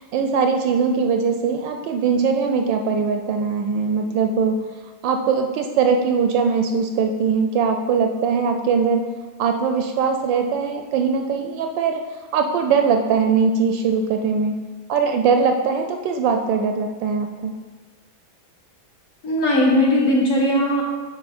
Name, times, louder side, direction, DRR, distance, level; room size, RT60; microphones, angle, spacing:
voice 1, 0.0-4.5 5.0-9.0 9.4-12.0 12.3-14.6 14.9-17.5, right 5 dB, 75° right, 5 dB, 1.2 m, -21 dB
voice 2, 19.2-20.8, left 1 dB, 45° left, -4 dB, 1.5 m, -18 dB
10.5 x 4.1 x 4.2 m, 1.4 s
omnidirectional pair, 2.2 m